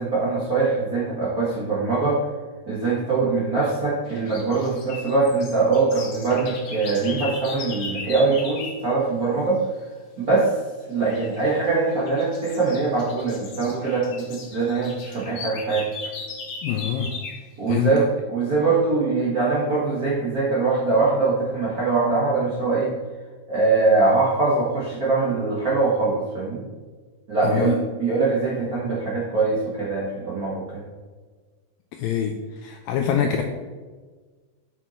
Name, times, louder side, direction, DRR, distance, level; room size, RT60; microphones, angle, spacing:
voice 1, 0.0-2.3 2.7-9.6 10.2-10.5 10.9-15.9 17.6-22.9 23.5-26.6 27.3-30.8, right 3 dB, 80° right, -8 dB, 0.8 m, -22 dB
sound 1, 4.1-8.8 11.1-11.4 11.9-17.5, left 4 dB, 60° left, 1.7 m, -37 dB
voice 2, 16.6-17.1 17.7-17.9 27.4-27.8 31.9-32.3 32.6-33.4, left 9 dB, 85° left, 4 dB, 2.0 m, -24 dB
7.8 x 6.1 x 4.3 m, 1.4 s
omnidirectional pair, 4.6 m